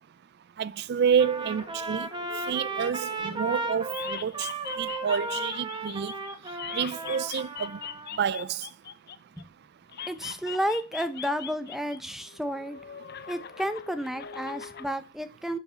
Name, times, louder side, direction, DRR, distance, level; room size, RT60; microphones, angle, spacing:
voice 1, 0.6-2.1 2.5-4.5 4.8-6.1 6.7-7.8 8.2-8.7, right 7 dB, 50° right, 0.3 m, -28 dB
sound 1, 1.2-3.6 3.9-9.4 9.9-12.0 12.3-14.9, left 8 dB, 50° left, 0.6 m, -42 dB
Trumpet, 1.2-8.1, right 3 dB, 20° right, 1.4 m, -35 dB
voice 2, 10.1-12.8 13.3-15.6, equal, ahead, 0.8 m, -31 dB
8.6 x 4.7 x 6.9 m
head